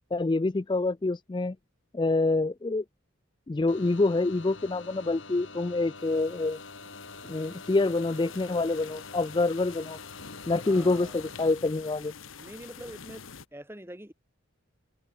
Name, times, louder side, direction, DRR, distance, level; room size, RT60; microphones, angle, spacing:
voice 1, 0.1-1.6 1.9-2.8 3.5-6.6 7.3-10.0 10.5-12.1, left 2 dB, 20° left, 0.3 m, -26 dB
sound 1, 3.7-11.5, left 3 dB, 70° left, 6.8 m, -46 dB
sound 2, 6.0-13.5, left 6 dB, 85° left, 1.3 m, -47 dB
voice 2, 10.6-11.3 12.4-13.2 13.5-14.1, right 1 dB, 10° right, 2.9 m, -44 dB
head